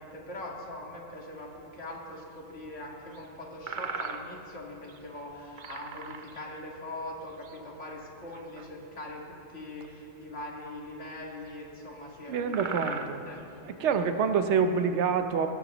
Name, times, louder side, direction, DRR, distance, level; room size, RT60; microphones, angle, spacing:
voice 1, 0.0-13.4, left 1 dB, 80° left, -2 dB, 2.3 m, -42 dB
sound 1, 1.5-1.6 2.2-2.3 3.1-3.3 3.7-4.5 4.8-5.1 5.6-6.6 7.2-7.6 8.3-8.5 9.9-10.0 10.6-10.7 11.5-11.6 12.1-12.2 12.5-14.0, right 5 dB, 50° right, 0.7 m, -39 dB
voice 2, 12.3-13.2 13.6-15.5, right 6 dB, 75° right, 8 dB, 1.1 m, -26 dB
19.5 x 15.5 x 3.0 m, 2.7 s
omnidirectional pair, 1.2 m